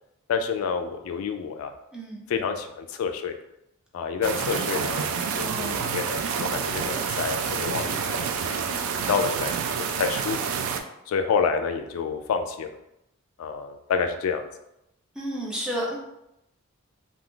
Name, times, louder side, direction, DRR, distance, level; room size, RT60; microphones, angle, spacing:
voice 1, 0.3-1.7 2.3-3.3 3.9-8.6 8.9-10.4 11.1-12.7 13.4-14.5, left 5 dB, 75° left, 6 dB, 0.3 m, -28 dB
voice 2, 1.9-2.4 5.4-5.9 15.2-16.0, right 1 dB, 5° right, -4 dB, 0.6 m, -32 dB
sound 1, 4.2-10.8, right 6 dB, 70° right, 0.3 m, -28 dB
2.5 x 2.3 x 3.6 m, 0.85 s
head